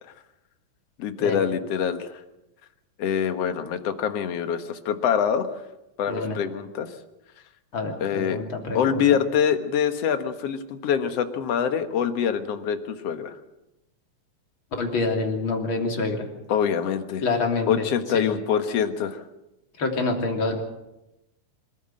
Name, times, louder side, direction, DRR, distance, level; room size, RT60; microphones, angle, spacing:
voice 1, 1.0-2.1 3.0-5.5 6.0-6.9 8.0-8.4 8.7-13.4 16.5-17.2 17.7-19.2, left 8 dB, 60° left, 8 dB, 2.3 m, -25 dB
voice 2, 7.7-9.2 14.8-16.2 17.2-17.8 18.1-18.3 19.8-20.6, left 3 dB, 40° left, 3 dB, 3.7 m, -27 dB
26.0 x 14.5 x 7.8 m, 0.93 s
omnidirectional pair, 3.4 m